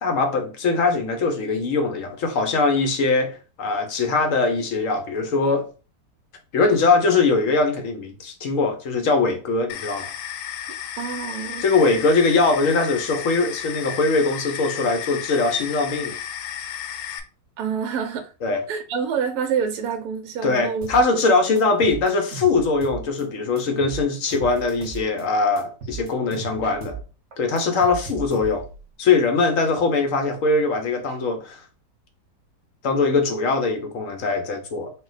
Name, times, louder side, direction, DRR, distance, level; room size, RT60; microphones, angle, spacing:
voice 1, 0.0-5.7 6.5-10.1 11.6-16.2 18.4-18.6 20.4-27.0 27.4-28.7 29.0-31.6 32.8-34.9, left 3 dB, 65° left, 0.8 m, -21 dB
sound 1, 9.7-17.2, left 10 dB, 80° left, 1.3 m, -33 dB
voice 2, 11.0-12.0 17.6-18.3 18.7-20.9 21.2-21.4, right 7 dB, 70° right, 1.0 m, -27 dB
sound 2, 20.8-21.2 21.6-23.2 23.6-25.2 25.6-27.1 27.3-28.8, right 5 dB, 45° right, 1.0 m, -36 dB
4.1 x 2.2 x 3.9 m
omnidirectional pair, 1.9 m